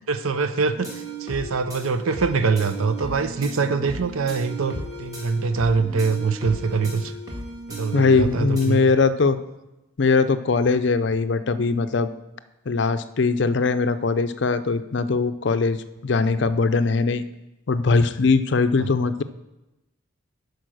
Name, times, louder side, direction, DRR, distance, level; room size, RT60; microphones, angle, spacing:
voice 1, 0.1-7.1 7.7-8.9 18.8-18.9, right 4 dB, 85° right, 10 dB, 0.6 m, -24 dB
sound 1, 0.7-8.7, right 1 dB, 20° right, 1.5 m, -36 dB
voice 2, 7.9-9.4 10.0-12.1 12.7-17.2 17.7-19.2, left 4 dB, 55° left, 12 dB, 0.5 m, -21 dB
11.0 x 4.7 x 6.3 m, 0.97 s
head